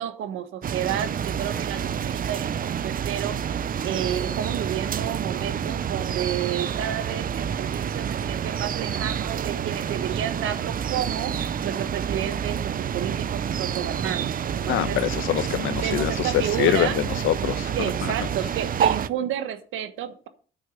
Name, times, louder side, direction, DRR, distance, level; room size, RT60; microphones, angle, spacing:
voice 1, 0.0-15.0 15.8-17.0 17.7-20.3, right 10 dB, 85° right, 1.4 m, -31 dB
sound 1, 0.6-19.1, right 8 dB, 45° right, 0.6 m, -28 dB
voice 2, 14.7-16.3 16.6-16.9 17.2-18.1, left 12 dB, 85° left, 0.9 m, -25 dB
9.2 x 6.4 x 7.2 m
cardioid pair, 90°, 20 cm